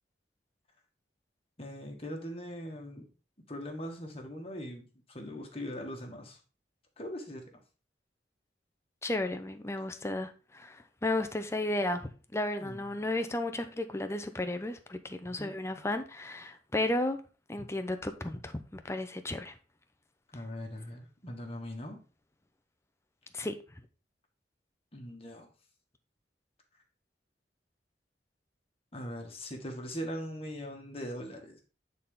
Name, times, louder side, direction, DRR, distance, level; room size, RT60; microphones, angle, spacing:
voice 1, 1.6-3.1 3.5-6.4 7.0-7.4 12.6-12.9 15.4-15.5 20.3-22.0 24.9-25.5 28.9-31.6, equal, 35° left, 1.6 m, -41 dB
voice 2, 9.0-17.2 17.5-19.5 23.3-23.5, left 1 dB, 15° left, 0.7 m, -33 dB
9.0 x 4.2 x 3.7 m
head